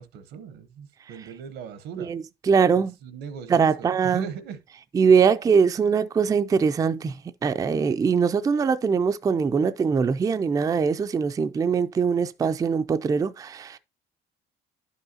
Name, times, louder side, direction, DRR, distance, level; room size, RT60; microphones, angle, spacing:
voice 1, 0.0-2.1 2.8-4.6, right 7 dB, 80° right, 0.9 m, -39 dB
voice 2, 2.0-3.0 3.5-4.3 4.9-7.2 7.4-13.8, right 6 dB, 20° right, 0.3 m, -22 dB
10.5 x 5.5 x 2.7 m
cardioid pair, 110°, 17 cm